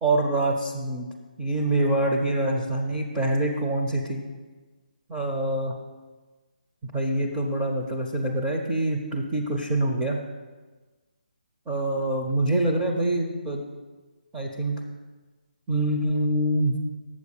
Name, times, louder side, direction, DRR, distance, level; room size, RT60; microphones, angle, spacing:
voice 1, 0.0-1.1 1.4-4.2 5.1-5.7 6.9-10.2 11.7-13.6 14.3-14.8 15.7-16.8, right 1 dB, 10° right, -2 dB, 0.4 m, -25 dB
7.2 x 4.6 x 7.0 m, 1.3 s
hypercardioid pair, 170°, 5 cm